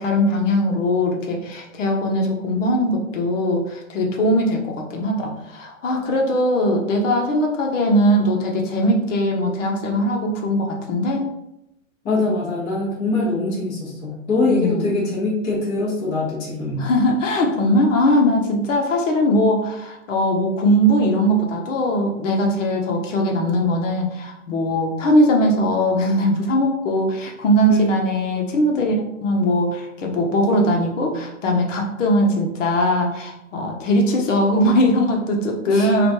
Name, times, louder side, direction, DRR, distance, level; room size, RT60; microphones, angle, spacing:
voice 1, 0.0-11.2 14.5-15.0 16.8-36.1, equal, 65° left, 1 dB, 1.0 m, -20 dB
voice 2, 12.0-16.9 27.7-28.1 35.7-35.9, left 2 dB, 20° left, -6 dB, 1.0 m, -23 dB
3.1 x 2.5 x 4.4 m, 0.86 s
hypercardioid pair, 160°, 40 cm